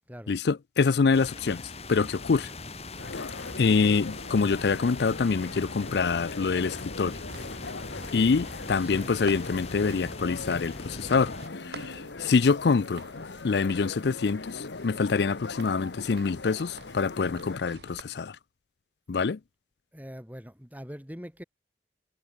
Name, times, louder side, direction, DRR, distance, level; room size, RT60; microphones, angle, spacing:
voice 1, 0.3-1.6 1.9-2.5 3.6-7.2 8.1-11.3 11.6-13.0 13.4-18.4 19.1-19.4, left 4 dB, 70° left, 0.5 m, -25 dB
sound 1, 1.1-11.5, left 2 dB, 35° left, 6.5 m, -41 dB
sound 2, 3.0-17.6, left 3 dB, 85° left, 1.2 m, -40 dB
sound 3, 7.1-18.0, right 3 dB, 70° right, 6.3 m, -50 dB
voice 2, 8.8-9.1 19.9-21.4, equal, 10° right, 5.2 m, -42 dB
head